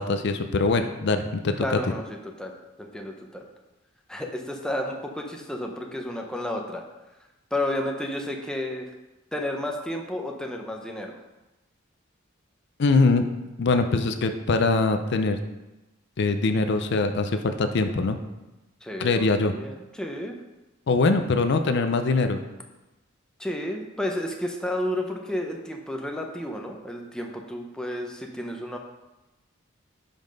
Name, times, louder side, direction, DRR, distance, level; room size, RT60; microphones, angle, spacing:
voice 1, 0.0-1.8 12.8-13.3 13.6-15.4 16.2-18.2 19.0-19.5 20.9-22.4, left 3 dB, 60° left, 8 dB, 0.5 m, -23 dB
voice 2, 1.6-2.5 2.8-3.5 4.1-6.8 7.5-8.8 9.3-11.2 18.8-20.3 23.4-28.8, left 1 dB, 5° left, 1 dB, 0.7 m, -31 dB
5.8 x 5.3 x 5.2 m, 1.0 s
head